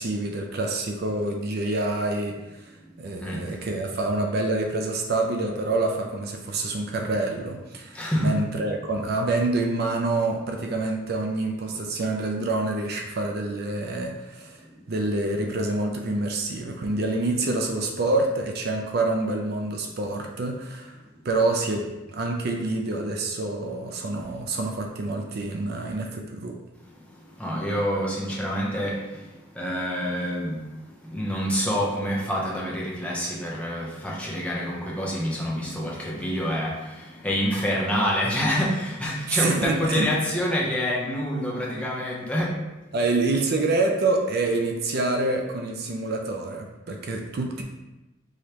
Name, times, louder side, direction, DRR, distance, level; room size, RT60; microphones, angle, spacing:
voice 1, 0.0-14.6 14.9-21.0 21.2-21.8 22.1-26.5 39.3-40.1 42.9-47.6, right 2 dB, 50° right, 2 dB, 0.5 m, -27 dB
voice 2, 3.2-3.5 7.9-8.4 27.4-29.3 29.5-42.6, equal, 5° left, -4 dB, 0.7 m, -27 dB
4.8 x 3.1 x 2.9 m, 1.0 s
head